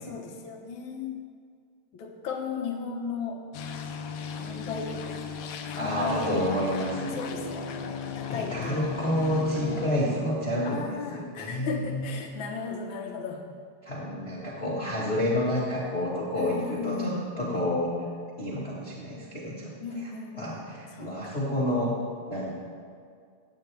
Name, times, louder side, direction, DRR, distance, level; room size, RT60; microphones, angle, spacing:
voice 1, 0.0-1.1 1.9-3.4 4.4-5.2 5.7-6.6 7.1-8.8 10.6-13.4 16.3-17.1 19.8-20.6 20.9-21.4, left 5 dB, 55° left, 2 dB, 1.5 m, -36 dB
sound 1, 3.5-9.9, left 5 dB, 75° left, 1.8 m, -36 dB
voice 2, 5.8-7.2 8.3-12.2 13.8-17.9 18.4-19.7 20.3-21.9 22.3-22.5, left 1 dB, 30° left, -7 dB, 1.3 m, -29 dB
16.0 x 9.0 x 3.4 m, 2.2 s
omnidirectional pair, 3.4 m